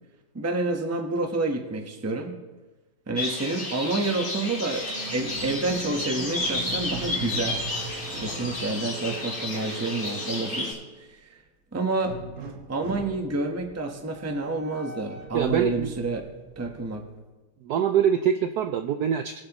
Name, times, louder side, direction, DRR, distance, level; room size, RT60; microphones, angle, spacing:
voice 1, 0.3-2.4 3.1-4.8 5.1-7.6 8.2-10.8 11.1-11.2 11.7-12.2 12.7-16.2 16.6-17.0, right 2 dB, 10° right, 4 dB, 0.7 m, -28 dB
sound 1, 3.2-10.7, left 2 dB, 40° left, 2.9 m, -32 dB
Squeak, 4.7-11.1 12.0-17.2, right 3 dB, 55° right, 1.7 m, -40 dB
voice 2, 15.3-15.9 17.6-19.4, right 8 dB, 75° right, 7 dB, 0.9 m, -24 dB
22.0 x 7.7 x 3.0 m, 1.2 s
omnidirectional pair, 2.2 m